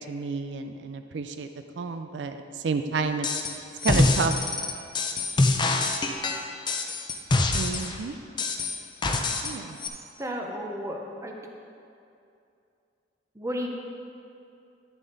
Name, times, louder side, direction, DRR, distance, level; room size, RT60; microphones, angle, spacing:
voice 1, 0.0-1.5 1.8-3.3 3.8-4.3 7.5-8.2 9.4-9.8, right 4 dB, 75° right, 8 dB, 0.4 m, -30 dB
sound 1, 3.2-3.5 3.8-7.9 8.4-9.5 9.8-9.9, left 2 dB, 25° left, 0.6 m, -25 dB
voice 2, 10.2-11.4 13.3-13.7, equal, 15° right, 1 dB, 0.8 m, -33 dB
10.5 x 7.0 x 4.0 m, 2.6 s
head